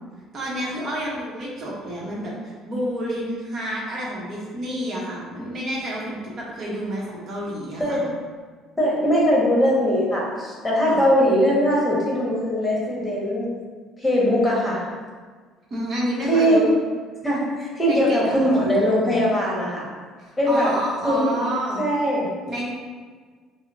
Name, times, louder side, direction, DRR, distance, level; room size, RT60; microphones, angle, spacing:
voice 1, 0.3-8.0 10.9-11.0 15.7-16.7 17.9-18.7 20.2-21.9 22.5-22.7, equal, 50° right, -4 dB, 0.9 m, -29 dB
voice 2, 8.8-13.5 14.0-14.8 16.3-16.6 17.2-19.8 20.4-20.7 21.0-21.3 21.8-22.3, equal, 10° left, -5 dB, 1.3 m, -20 dB
5.4 x 2.1 x 2.7 m, 1.5 s
supercardioid pair, 90°, 0 cm